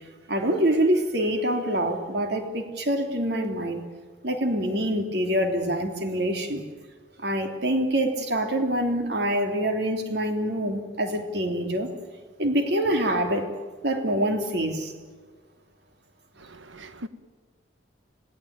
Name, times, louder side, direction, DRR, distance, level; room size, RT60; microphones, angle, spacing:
voice 1, 0.3-3.8 4.2-6.6 7.2-11.9 12.4-13.5 13.8-14.9, right 1 dB, 60° right, 3.1 m, -25 dB
voice 2, 16.4-17.1, equal, 85° right, 1.5 m, -41 dB
27.0 x 17.5 x 9.0 m
head